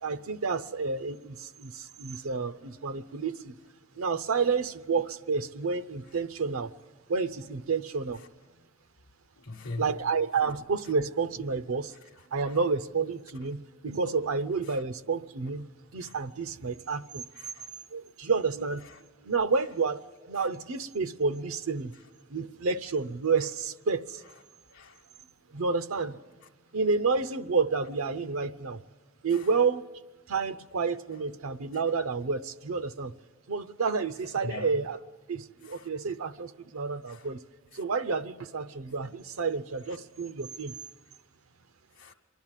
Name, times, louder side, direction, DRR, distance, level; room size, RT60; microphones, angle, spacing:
voice 1, 0.0-3.6 4.0-6.7 7.1-8.2 9.8-11.9 12.3-17.2 17.9-18.9 19.2-21.9 22.3-24.2 25.5-26.2 26.7-28.8 29.2-29.8 30.3-33.1 33.5-35.0 35.3-37.4 37.7-40.7, right 4 dB, 80° right, 0.7 m, -30 dB
voice 2, 9.4-9.9 12.4-12.5 14.7-14.8 16.0-16.2 17.3-17.7 18.8-19.0 20.4-20.5 24.7-25.0 29.3-29.5 34.4-34.7 35.6-35.9 37.1-37.3 37.7-37.8 42.0-42.1, left 2 dB, 55° left, 0.9 m, -42 dB
26.5 x 11.5 x 9.0 m
head